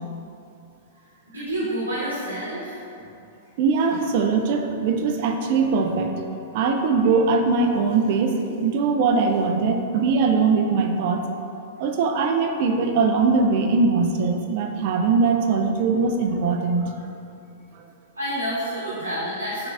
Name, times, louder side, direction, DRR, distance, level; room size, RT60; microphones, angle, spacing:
voice 1, 1.3-3.1 18.2-19.7, equal, 85° right, -8 dB, 0.8 m, -29 dB
voice 2, 3.6-6.2 6.5-11.2 11.8-16.9, right 4 dB, 50° right, 4 dB, 0.3 m, -21 dB
3.8 x 3.6 x 2.4 m, 2.6 s
figure-of-eight pair, 105°, 0 cm